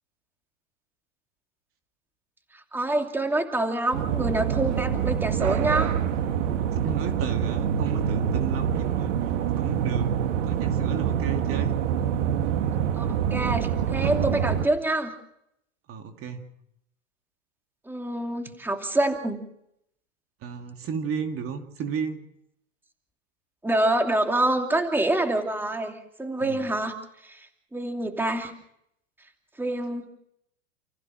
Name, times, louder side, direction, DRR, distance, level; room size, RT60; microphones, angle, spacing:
voice 1, 2.7-6.0 13.0-15.2 17.9-19.4 23.6-25.9 26.2-27.0 27.2-27.4 27.7-28.5 29.6-30.1, right 2 dB, 5° right, 4 dB, 2.8 m, -26 dB
sound 1, 3.9-14.7, right 8 dB, 70° right, 1.8 m, -26 dB
voice 2, 6.8-10.2 10.4-11.8 15.9-16.5 18.5-18.6 20.4-22.2 26.4-26.6, right 7 dB, 35° right, 5 dB, 2.6 m, -34 dB
29.5 x 15.0 x 6.3 m, 0.77 s
hypercardioid pair, 105°, 39 cm